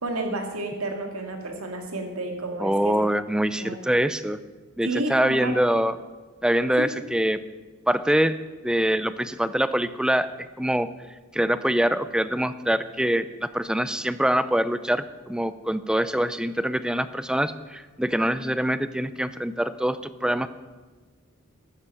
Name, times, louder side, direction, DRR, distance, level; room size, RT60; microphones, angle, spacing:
voice 1, 0.0-3.0 3.6-3.8 4.8-5.5 6.8-6.9, right 2 dB, 85° right, 4 dB, 2.2 m, -30 dB
voice 2, 2.6-4.4 4.8-5.9 6.4-7.4 7.9-8.4 8.6-10.3 10.6-10.9 11.3-20.5, right 1 dB, 5° right, 13 dB, 0.4 m, -24 dB
13.5 x 9.8 x 5.6 m, 1.3 s
head